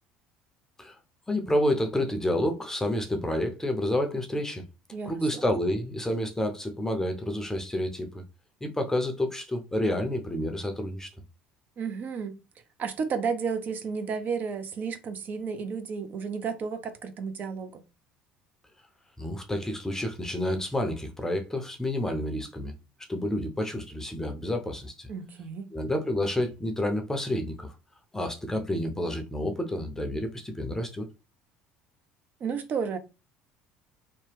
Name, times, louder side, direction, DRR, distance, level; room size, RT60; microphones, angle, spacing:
voice 1, 1.3-4.6 5.0-8.1 8.6-11.1 19.2-22.7 23.1-25.1 25.7-27.7 28.1-31.0, left 1 dB, 10° left, 0.6 m, -29 dB
voice 2, 4.9-5.4 11.8-12.4 12.8-17.8 25.1-25.7 32.4-33.0, right 5 dB, 45° right, 0.6 m, -32 dB
2.9 x 2.1 x 3.3 m
hypercardioid pair, 70°, 4 cm